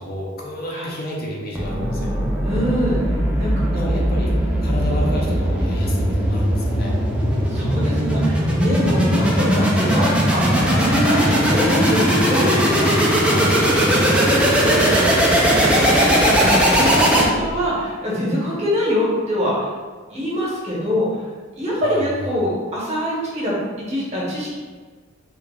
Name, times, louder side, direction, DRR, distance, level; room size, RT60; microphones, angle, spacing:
voice 1, 0.0-2.2 3.7-7.0 9.1-9.3 11.2-11.4 13.2-13.8 21.7-22.4, left 1 dB, 50° left, -2 dB, 0.6 m, -31 dB
sound 1, 1.5-17.7, equal, 5° right, 0.5 m, -19 dB
voice 2, 2.4-3.9 7.5-13.2 13.8-19.7 20.1-21.3 21.6-24.6, equal, 35° right, -7 dB, 1.2 m, -24 dB
Explosion, 10.6-13.5, left 1 dB, 85° left, 0.7 m, -31 dB
3.3 x 2.8 x 3.5 m, 1.4 s
head